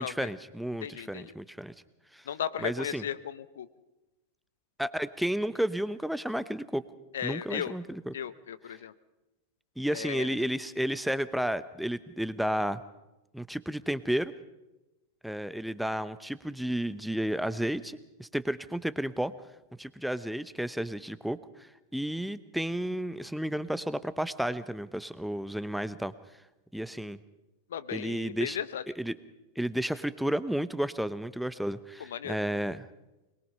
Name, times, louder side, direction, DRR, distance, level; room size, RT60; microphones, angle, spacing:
voice 1, 0.0-1.7 2.1-2.3 2.6-3.0 4.8-6.8 7.2-8.1 9.8-12.8 13.3-14.3 15.2-19.3 19.8-26.1 26.7-27.2 27.9-28.6 29.0-29.1 29.6-32.9, equal, ahead, 15 dB, 0.9 m, -32 dB
voice 2, 0.8-1.3 2.2-3.7 7.1-7.7 8.1-8.9 9.9-10.3 27.7-28.8 32.0-32.4, left 9 dB, 65° left, 15 dB, 0.8 m, -36 dB
22.5 x 21.5 x 5.5 m, 1.0 s
figure-of-eight pair, 90°, 0 cm